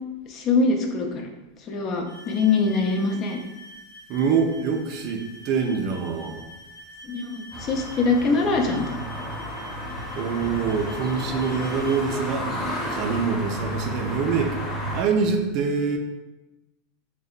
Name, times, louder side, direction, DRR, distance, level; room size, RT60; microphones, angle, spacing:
voice 1, 0.3-1.3 1.6-3.4 7.0-8.8, left 4 dB, 40° left, 3 dB, 0.4 m, -23 dB
sound 1, 2.1-12.2, equal, 65° left, 0.9 m, -45 dB
voice 2, 4.1-6.5 10.1-12.6 12.9-14.6 14.9-16.0, right 5 dB, 50° right, 3 dB, 0.4 m, -25 dB
sound 2, 7.5-15.0, equal, 25° left, 0.8 m, -32 dB
2.7 x 2.1 x 2.3 m, 1.0 s
hypercardioid pair, 100°, 0 cm